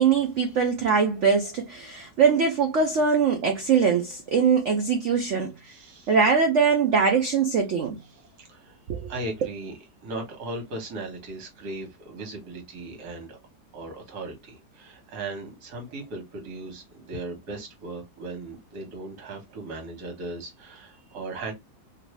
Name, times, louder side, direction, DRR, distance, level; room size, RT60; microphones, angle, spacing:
voice 1, 0.0-5.5 6.1-8.0 8.9-9.1, right 5 dB, 80° right, 0.6 m, -22 dB
voice 2, 5.6-6.1 8.1-8.8 9.1-13.4 13.7-21.5, right 2 dB, 65° right, 1.7 m, -37 dB
3.1 x 2.6 x 3.0 m
omnidirectional pair, 1.9 m